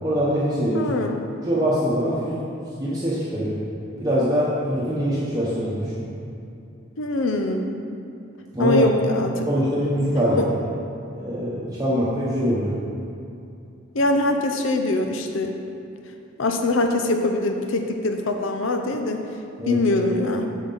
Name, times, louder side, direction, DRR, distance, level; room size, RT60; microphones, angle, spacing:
voice 1, 0.0-0.9 1.4-2.4 2.8-3.6 4.0-6.0 8.5-8.9 9.5-10.4 11.1-12.7 19.6-19.8, equal, 15° right, -9 dB, 0.9 m, -23 dB
voice 2, 0.7-1.2 7.0-7.7 8.6-9.5 10.3-10.5 13.9-15.5 16.4-19.2 19.7-20.5, left 2 dB, 80° left, 4 dB, 0.7 m, -23 dB
7.4 x 6.2 x 4.1 m, 2.6 s
head